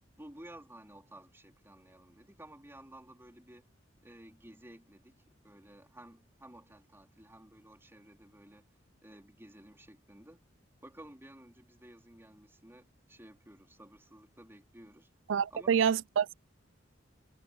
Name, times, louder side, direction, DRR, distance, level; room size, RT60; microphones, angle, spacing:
voice 1, 0.2-3.7 4.0-8.7 9.0-10.4 10.8-15.1 15.5-16.0, right 1 dB, 15° right, 4.0 m, -54 dB
voice 2, 15.3-16.3, right 7 dB, 75° right, 0.4 m, -27 dB
head